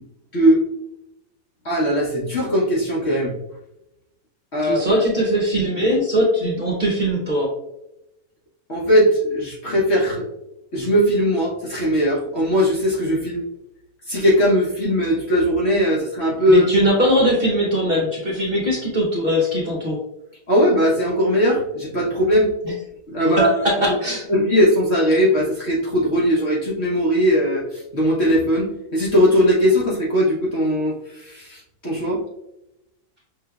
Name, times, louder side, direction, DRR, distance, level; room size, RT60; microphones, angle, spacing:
voice 1, 0.3-0.6 1.6-3.3 4.5-4.8 8.7-10.3 10.7-13.4 14.1-16.7 20.5-22.5 23.1-23.5 23.9-24.0 24.3-32.2, equal, 45° left, -4 dB, 1.0 m, -19 dB
voice 2, 4.6-7.5 16.5-20.0 22.6-22.7 23.4-24.2, equal, 40° right, -3 dB, 0.9 m, -20 dB
5.7 x 3.2 x 2.3 m, 0.88 s
omnidirectional pair, 1.8 m